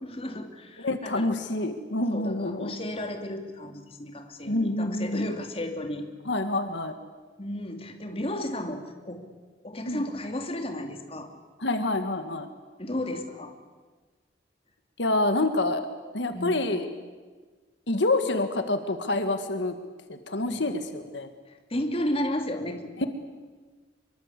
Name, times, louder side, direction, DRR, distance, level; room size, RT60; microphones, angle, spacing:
voice 1, 0.0-1.3 2.1-6.1 7.4-9.2 9.6-11.3 12.8-13.5 16.3-16.6 20.4-20.7 21.5-23.1, left 1 dB, 30° left, 5 dB, 2.7 m, -33 dB
voice 2, 0.8-2.7 4.5-5.3 6.2-6.9 9.8-10.0 11.6-12.5 15.0-15.8 16.1-16.9 17.9-19.8 20.1-21.3, left 2 dB, 80° left, 8 dB, 1.8 m, -27 dB
25.5 x 23.5 x 8.4 m, 1.4 s
head